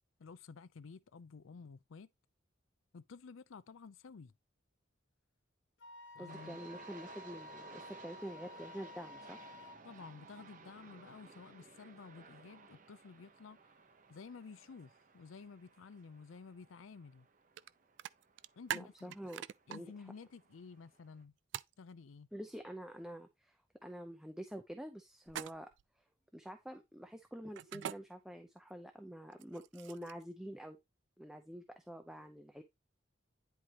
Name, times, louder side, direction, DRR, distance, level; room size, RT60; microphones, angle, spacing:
voice 1, 0.2-2.1 2.9-4.3 6.1-6.6 9.8-13.6 14.1-17.3 18.6-18.9 19.7-21.3 21.8-22.3, left 5 dB, 90° left, 0.5 m, -52 dB
Wind instrument woodwind instrument, 5.8-9.8, left 3 dB, 65° left, 1.1 m, -53 dB
voice 2, 6.2-9.4 18.7-19.4 19.7-19.9 22.3-23.6 23.8-25.7 26.3-30.8 31.2-32.6, equal, 5° right, 0.6 m, -47 dB
sound 1, 6.3-21.2, right 4 dB, 45° right, 0.9 m, -58 dB
sound 2, 17.6-17.7 18.0-19.8 21.5-21.7 25.3-25.8 27.6-28.0 29.3-30.2, right 10 dB, 65° right, 0.3 m, -42 dB
10.0 x 4.6 x 2.9 m
head